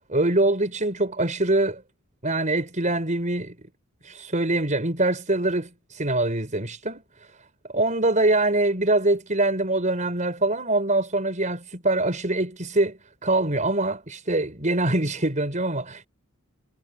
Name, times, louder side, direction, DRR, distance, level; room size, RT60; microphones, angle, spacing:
voice 1, 0.1-1.8 2.2-3.6 4.0-7.0 7.7-16.1, right 2 dB, 35° right, 5.3 m, -24 dB
head